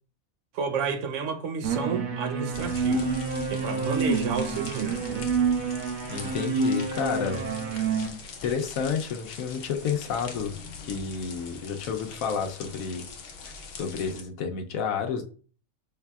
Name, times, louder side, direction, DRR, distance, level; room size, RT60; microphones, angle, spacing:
voice 1, 0.5-3.1 3.5-5.3, right 6 dB, 70° right, 0.9 m, -31 dB
sound 1, 1.6-8.1, right 5 dB, 85° right, 1.2 m, -28 dB
sound 2, 2.5-14.2, left 4 dB, 55° left, 0.8 m, -42 dB
voice 2, 6.1-7.4 8.0-8.1 8.4-10.6 10.8-13.0 13.4-13.5 13.8-15.3, left 6 dB, 80° left, 1.1 m, -30 dB
5.6 x 3.3 x 2.3 m
omnidirectional pair, 1.5 m